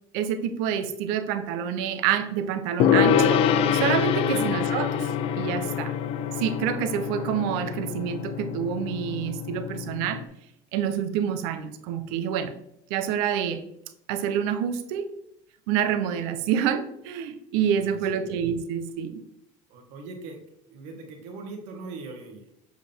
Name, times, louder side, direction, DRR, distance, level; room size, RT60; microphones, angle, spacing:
voice 1, 0.1-3.5 3.7-5.1 5.4-5.9 6.4-10.2 10.7-12.5 12.9-13.6 14.1-15.1 15.7-19.2, right 8 dB, 85° right, 10 dB, 0.8 m, -27 dB
Gong, 2.8-10.2, left 8 dB, 50° left, 0.5 m, -25 dB
voice 2, 17.7-18.4 19.7-20.4 20.7-22.5, right 3 dB, 65° right, 2 dB, 1.8 m, -41 dB
7.6 x 4.9 x 3.6 m, 0.75 s
cardioid pair, 150°, 13 cm